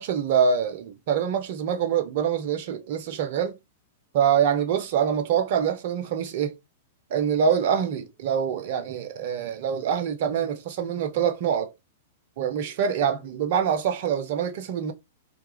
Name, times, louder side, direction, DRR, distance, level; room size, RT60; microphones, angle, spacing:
voice 1, 0.0-3.6 4.1-6.6 7.1-11.7 12.4-14.9, right 7 dB, 50° right, 0.5 m, -25 dB
2.3 x 2.2 x 3.0 m
figure-of-eight pair, 100°, 0 cm